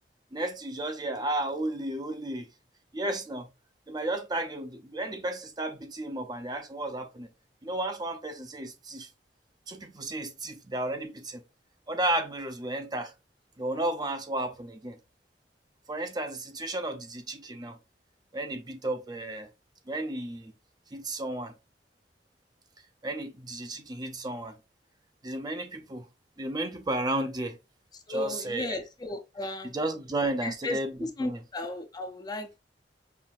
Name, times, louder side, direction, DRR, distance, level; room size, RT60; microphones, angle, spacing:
voice 1, 0.3-2.5 2.9-3.5 3.9-7.3 7.6-9.1 9.7-11.4 11.9-13.1 13.6-15.0 15.9-17.8 18.3-19.5 19.9-20.5 20.9-21.5 23.0-24.6 25.2-26.1 26.4-27.6 28.1-28.8 29.6-31.4, right 1 dB, 25° right, 0.6 m, -33 dB
voice 2, 28.1-29.7 30.4-32.6, left 2 dB, 25° left, 0.6 m, -36 dB
5.6 x 2.6 x 2.5 m
head